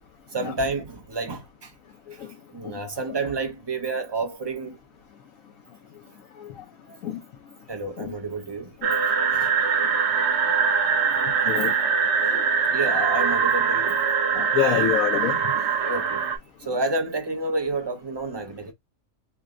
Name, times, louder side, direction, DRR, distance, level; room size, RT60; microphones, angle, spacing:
voice 1, 0.3-1.7 2.1-4.8 7.7-8.8 9.3-9.6 11.8-11.9 12.7-14.0 15.8-16.3 16.6-18.7, right 2 dB, 30° right, 0.5 m, -30 dB
sound 1, 8.8-16.4, right 6 dB, 60° right, 0.9 m, -23 dB
voice 2, 14.4-15.4, left 9 dB, 85° left, 1.2 m, -25 dB
3.3 x 2.1 x 3.6 m
omnidirectional pair, 1.4 m